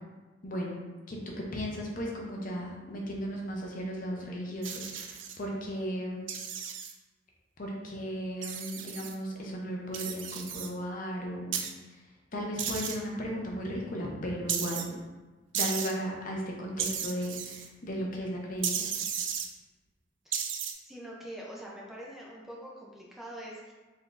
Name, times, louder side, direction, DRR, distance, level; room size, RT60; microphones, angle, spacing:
voice 1, 0.4-6.2 7.6-11.7 12.3-15.0 15.5-18.9, equal, 45° left, -1 dB, 0.7 m, -35 dB
sound 1, 4.6-5.4 6.3-6.9 8.4-9.1 9.9-10.7 11.5-11.7 12.6-13.0 14.5-14.8 15.5-15.9 16.8-17.7 18.6-19.5 20.3-20.7, right 7 dB, 80° right, 0.4 m, -34 dB
voice 2, 20.8-23.7, right 1 dB, ahead, -4 dB, 0.5 m, -44 dB
4.1 x 3.4 x 2.5 m, 1.2 s
head